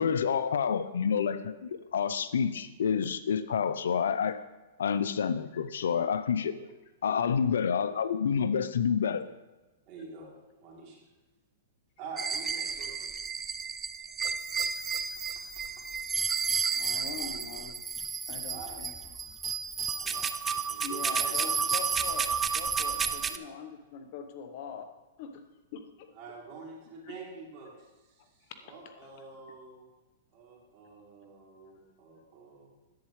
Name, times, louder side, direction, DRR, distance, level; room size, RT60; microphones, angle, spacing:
voice 1, 0.0-4.4 4.8-6.5 7.0-9.2, left 7 dB, 80° left, 13 dB, 0.5 m, -28 dB
voice 2, 9.9-10.3 10.6-11.0 12.0-13.1 15.3-15.4 15.8-15.9 17.2-17.6 18.5-18.7 19.9-21.8 23.0-23.7 26.2-27.9 28.2-29.8 30.3-32.7, right 3 dB, 40° right, -3 dB, 3.1 m, -47 dB
sound 1, 12.2-23.4, right 6 dB, 15° right, 0.4 m, -32 dB
voice 3, 16.5-17.8 18.3-19.5 20.8-24.9 25.2-25.4 25.7-26.1 27.0-27.2 28.2-28.6 28.8-29.1, left 6 dB, 50° left, 7 dB, 0.9 m, -44 dB
10.5 x 8.6 x 3.2 m, 1.1 s
hypercardioid pair, 130°, 0 cm